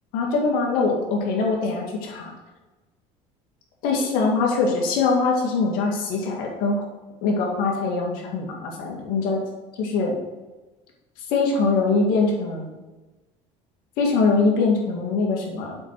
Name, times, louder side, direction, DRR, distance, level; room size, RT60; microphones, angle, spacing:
voice 1, 0.1-2.3 3.8-6.9 7.2-9.4 9.8-10.2 11.3-12.7 14.0-15.8, left 4 dB, 70° left, -1 dB, 2.3 m, -22 dB
7.8 x 4.8 x 6.1 m, 1.2 s
supercardioid pair, 100°, 15 cm